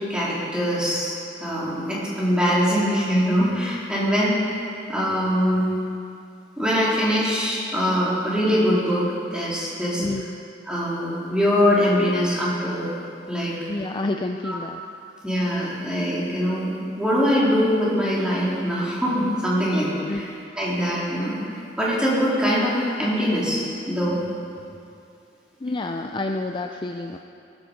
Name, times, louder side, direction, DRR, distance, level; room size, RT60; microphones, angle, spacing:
voice 1, 0.1-1.1 1.4-4.6 4.9-5.6 6.6-9.0 9.3-10.0 10.7-12.9 13.3-13.6 14.4-14.6 15.2-16.7 17.0-20.3 20.6-24.2, equal, 5° right, -7 dB, 3.7 m, -23 dB
voice 2, 10.0-10.4 13.7-14.8 20.1-20.2 25.6-27.2, left 2 dB, 25° left, 4 dB, 0.5 m, -29 dB
18.5 x 12.5 x 5.3 m, 2.5 s
head